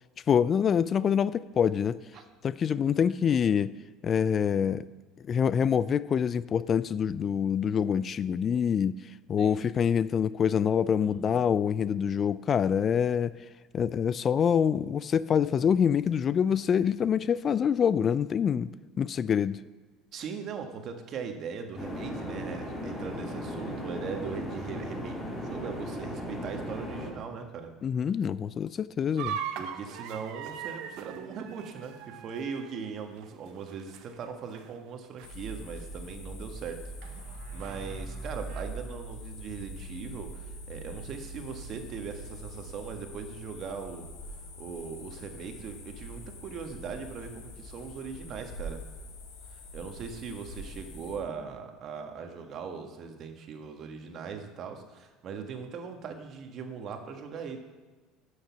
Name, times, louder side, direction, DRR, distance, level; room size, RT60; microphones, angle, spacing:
voice 1, 0.3-2.0 2.4-3.7 4.0-4.9 5.3-9.0 9.3-13.3 13.7-18.7 19.0-19.6 27.8-29.4, left 7 dB, 40° left, 17 dB, 0.3 m, -26 dB
voice 2, 11.0-11.5 20.1-27.7 29.6-44.1 44.3-48.8 49.5-57.6, right 6 dB, 50° right, 5 dB, 1.5 m, -40 dB
sound 1, 21.8-27.1, equal, 15° left, 3.6 m, -36 dB
sound 2, 29.2-34.3 34.5-34.9 35.2-35.3 36.0-36.1 37.0-38.6, right 8 dB, 70° right, 0.8 m, -41 dB
sound 3, 35.2-51.1, right 1 dB, 90° left, 2.2 m, -43 dB
11.5 x 6.5 x 5.9 m, 1.3 s
supercardioid pair, 95°, 0 cm